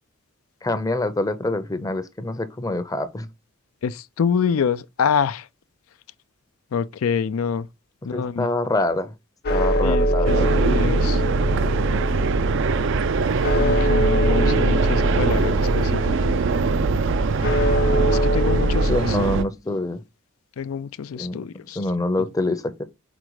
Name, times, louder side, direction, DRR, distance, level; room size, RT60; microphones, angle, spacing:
voice 1, 0.6-3.3 8.1-9.1 9.5-10.5 18.9-20.0 21.2-21.4 21.8-22.8, left 2 dB, 15° left, 0.6 m, -25 dB
voice 2, 3.8-5.5 6.7-7.7 8.0-8.5 9.8-11.2 13.6-16.3 18.1-19.2 20.6-21.8, left 6 dB, 90° left, 0.4 m, -26 dB
sound 1, 9.4-19.0, equal, 50° left, 0.7 m, -22 dB
sound 2, 10.2-19.4, right 5 dB, 60° right, 0.4 m, -23 dB
5.1 x 4.2 x 4.6 m
head